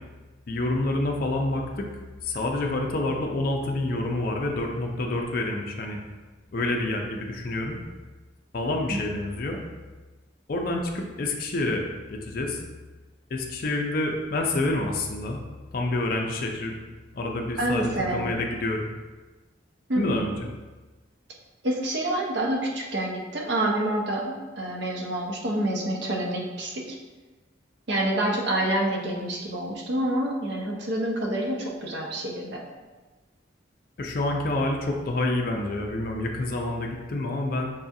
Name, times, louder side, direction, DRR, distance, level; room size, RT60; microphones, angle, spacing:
voice 1, 0.5-1.9 2.2-6.0 6.5-7.8 8.5-9.6 10.5-11.8 12.1-12.6 13.3-15.4 15.7-16.7 17.1-18.9 20.0-20.5 34.0-37.7, left 2 dB, 45° left, 1 dB, 0.4 m, -28 dB
voice 2, 17.6-18.3 19.9-20.2 21.6-27.0 27.9-32.6, right 1 dB, 60° right, -1 dB, 0.6 m, -27 dB
5.4 x 2.4 x 2.6 m, 1.3 s
head